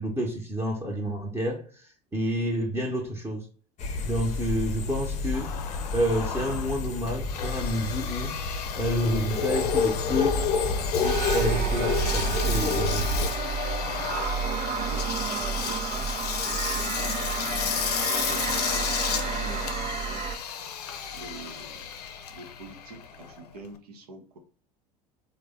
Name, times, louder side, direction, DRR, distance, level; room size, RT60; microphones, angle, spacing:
voice 1, 0.0-3.5 4.0-5.6 5.9-8.4 8.8-10.5 11.0-13.1, equal, 15° right, 0.8 m, -29 dB
sound 1, 3.8-13.3, left 4 dB, 35° left, 0.6 m, -29 dB
Engine, 5.3-23.8, left 8 dB, 80° left, 0.5 m, -33 dB
sound 2, 11.0-20.4, right 7 dB, 35° right, 0.4 m, -31 dB
voice 2, 14.8-20.3 21.1-21.9 22.3-24.4, right 3 dB, 80° right, 0.8 m, -45 dB
3.3 x 2.1 x 3.5 m
hypercardioid pair, 80°, 20 cm